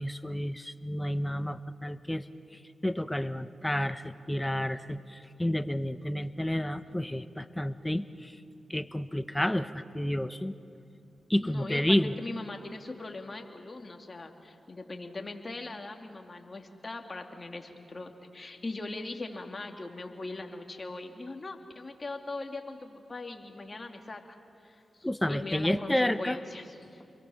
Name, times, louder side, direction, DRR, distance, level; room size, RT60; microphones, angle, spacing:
voice 1, 0.0-2.2 2.8-8.4 8.7-10.6 11.3-12.1 25.0-26.4, left 1 dB, 10° left, 12 dB, 1.2 m, -30 dB
voice 2, 11.4-11.8 12.2-24.4 24.6-27.0, left 2 dB, 40° left, 4 dB, 2.9 m, -40 dB
29.5 x 23.0 x 7.3 m, 2.6 s
supercardioid pair, 40°, 0 cm